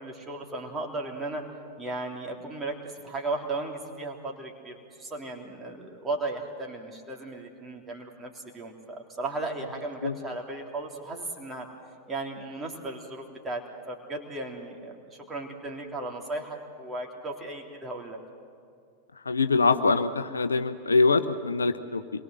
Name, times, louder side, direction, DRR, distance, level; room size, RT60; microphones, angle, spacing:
voice 1, 0.0-1.4 1.8-11.7 12.1-18.2, right 2 dB, 15° right, 1 dB, 3.4 m, -36 dB
voice 2, 19.3-22.0, left 4 dB, 75° left, 10 dB, 0.8 m, -23 dB
26.5 x 22.0 x 7.8 m, 2.2 s
figure-of-eight pair, 90°, 0 cm